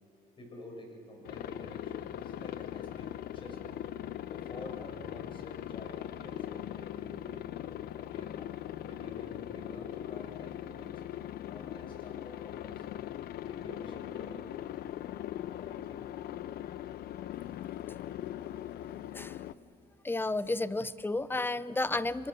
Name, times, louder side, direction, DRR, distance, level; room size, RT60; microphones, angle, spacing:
voice 1, 0.4-3.8 4.3-7.5 8.0-8.6 8.9-11.0 11.4-12.9 13.4-14.5 15.6-16.1, left 1 dB, 30° left, 2 dB, 7.0 m, -49 dB
Aircraft, 1.2-19.5, left 12 dB, 65° left, 0.7 m, -40 dB
voice 2, 20.0-22.3, left 2 dB, 15° left, 16 dB, 0.7 m, -32 dB
27.0 x 23.5 x 6.8 m, 2.2 s
cardioid pair, 110°, 17 cm